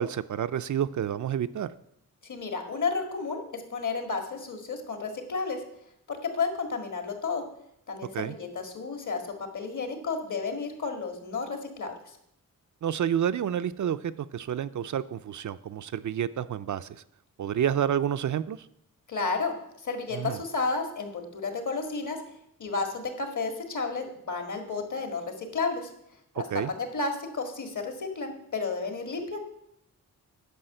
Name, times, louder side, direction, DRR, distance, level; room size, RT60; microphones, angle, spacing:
voice 1, 0.0-1.7 8.1-8.3 12.8-17.0 17.4-18.6 20.1-20.4 26.4-26.7, right 9 dB, 60° right, 12 dB, 0.4 m, -29 dB
voice 2, 2.2-5.6 6.1-7.4 7.9-9.2 9.5-11.9 19.1-19.6 19.8-22.2 22.6-25.9 26.4-29.4, left 4 dB, 60° left, 5 dB, 1.9 m, -32 dB
10.0 x 5.5 x 7.8 m, 0.76 s
wide cardioid pair, 155°, 34 cm